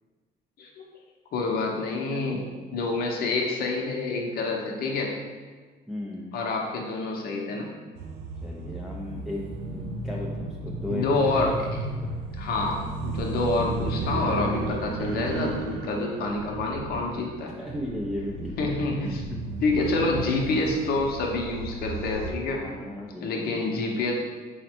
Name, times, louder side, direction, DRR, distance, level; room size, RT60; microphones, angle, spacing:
voice 1, 1.3-5.3 6.3-7.7 10.9-11.7 12.4-17.5 18.6-19.2 19.6-22.7 23.2-24.1, left 3 dB, 65° left, 0 dB, 0.7 m, -27 dB
voice 2, 5.9-6.3 8.4-9.4 9.7-11.6 12.0-12.2 17.6-18.7 19.0-19.2 22.6-23.6, left 1 dB, ahead, -4 dB, 0.4 m, -35 dB
sound 1, 8.0-22.3, right 2 dB, 80° right, 0.5 m, -34 dB
4.0 x 2.1 x 4.3 m, 1.4 s
cardioid pair, 110°, 17 cm